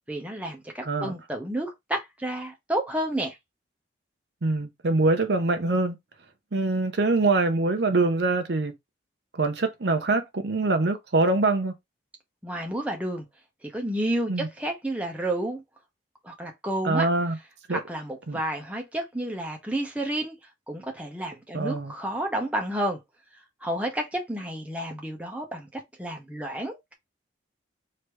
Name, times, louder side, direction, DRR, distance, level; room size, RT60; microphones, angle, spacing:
voice 1, 0.1-3.4 12.4-13.2 13.6-15.6 16.2-17.1 17.7-20.4 20.7-23.0 23.6-25.7 26.0-26.9, right 1 dB, 5° right, 0.9 m, -30 dB
voice 2, 4.4-6.0 6.5-8.7 9.3-11.7 14.3-14.5 16.8-17.4 17.7-17.8 18.3-18.4 21.5-21.9, right 3 dB, 60° right, 0.7 m, -24 dB
3.3 x 2.9 x 4.6 m
head